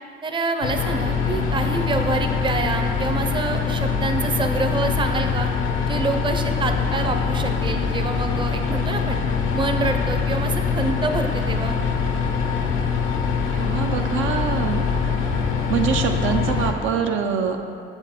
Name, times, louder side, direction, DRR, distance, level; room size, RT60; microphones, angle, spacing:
voice 1, 0.2-5.5 5.9-9.2 9.5-11.8, right 3 dB, 25° right, 5 dB, 0.5 m, -26 dB
sound 1, 0.6-16.7, left 5 dB, 80° left, 0.7 m, -23 dB
voice 2, 13.5-14.9 15.7-17.6, right 7 dB, 80° right, 4 dB, 0.5 m, -24 dB
6.1 x 4.4 x 5.7 m, 2.4 s
cardioid pair, 90°, 20 cm